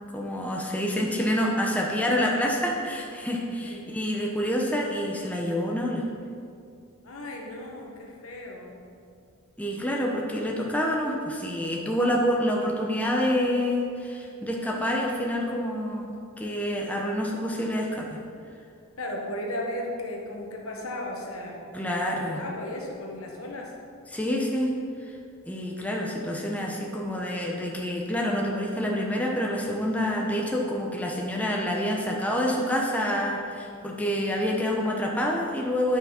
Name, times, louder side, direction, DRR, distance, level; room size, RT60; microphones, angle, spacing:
voice 1, 0.1-6.0 9.6-16.1 16.4-18.2 21.7-22.4 24.1-24.7 25.5-36.0, equal, 5° left, -1 dB, 0.7 m, -27 dB
voice 2, 7.0-8.8 19.0-21.6 21.9-23.7, left 1 dB, 70° left, 0 dB, 1.3 m, -36 dB
9.6 x 5.8 x 4.3 m, 2.3 s
head